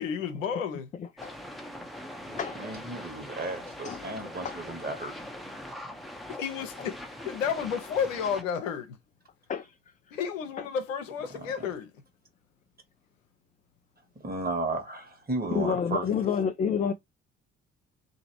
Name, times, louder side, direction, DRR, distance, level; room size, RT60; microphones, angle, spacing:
voice 1, 0.0-0.9 6.3-9.0 10.1-11.9, left 7 dB, 80° left, 0.7 m, -32 dB
voice 2, 1.0-1.4 2.3-2.6 3.8-4.1 4.4-4.6 9.5-9.7 10.6-10.7 15.5-16.9, left 7 dB, 20° left, 0.4 m, -29 dB
sound 1, 1.2-8.4, left 1 dB, ahead, 0.7 m, -42 dB
voice 3, 2.2-5.1 11.3-11.7 14.2-16.0, right 2 dB, 25° right, 1.4 m, -34 dB
2.8 x 2.7 x 2.8 m
figure-of-eight pair, 45°, 39 cm